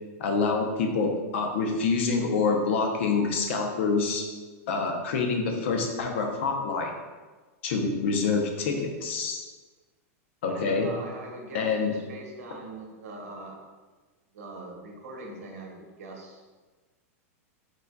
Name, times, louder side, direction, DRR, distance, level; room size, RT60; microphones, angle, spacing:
voice 1, 0.2-4.2 4.7-6.9 7.6-9.4 10.4-10.9 11.5-11.9, left 4 dB, 50° left, 3 dB, 0.6 m, -26 dB
voice 2, 10.5-13.6 14.3-16.4, right 2 dB, 75° right, 0 dB, 1.0 m, -42 dB
4.9 x 3.9 x 2.2 m, 1.3 s
supercardioid pair, 180°, 8 cm